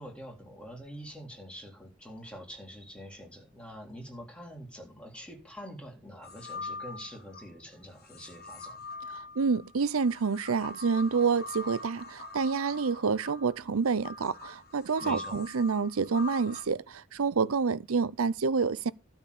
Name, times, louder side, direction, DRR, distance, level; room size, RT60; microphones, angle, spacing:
voice 1, 0.0-8.8 15.0-15.4, equal, 5° left, 3.7 m, -45 dB
sound 1, 6.2-7.5 8.0-16.6, left 3 dB, 50° left, 1.9 m, -43 dB
voice 2, 9.4-18.9, right 5 dB, 80° right, 0.6 m, -28 dB
12.5 x 4.5 x 8.4 m
head